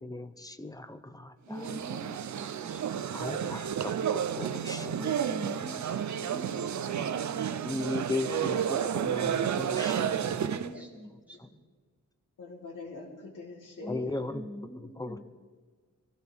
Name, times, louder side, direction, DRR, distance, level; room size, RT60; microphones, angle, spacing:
voice 1, 0.0-1.3 3.1-4.8 7.7-10.4 13.9-14.4 15.0-15.2, left 2 dB, 10° left, 10 dB, 0.7 m, -36 dB
voice 2, 1.5-3.0 4.8-8.1 10.4-11.6 13.8-15.2, equal, 5° right, -2 dB, 3.1 m, -44 dB
sound 1, 1.6-10.7, right 9 dB, 65° right, 0.6 m, -31 dB
voice 3, 12.4-14.2, left 3 dB, 85° left, -2 dB, 3.5 m, -44 dB
23.5 x 15.5 x 3.5 m, 1.5 s
wide cardioid pair, 130°, 31 cm